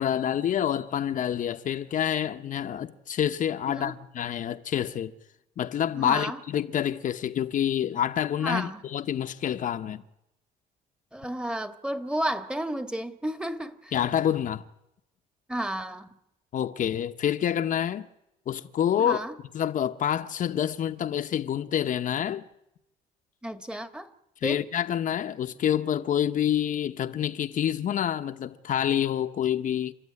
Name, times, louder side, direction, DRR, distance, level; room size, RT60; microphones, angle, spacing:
voice 1, 0.0-5.1 5.6-10.0 13.9-14.6 16.5-18.1 18.5-19.2 19.5-22.4 24.4-29.9, left 10 dB, 50° left, 1.0 m, -27 dB
voice 2, 3.7-4.0 5.9-6.4 8.4-8.8 11.1-14.0 15.5-16.2 19.0-19.3 23.4-24.1 24.4-24.6, right 1 dB, 5° right, 1.5 m, -32 dB
29.5 x 13.5 x 9.8 m
cardioid pair, 110°, 17 cm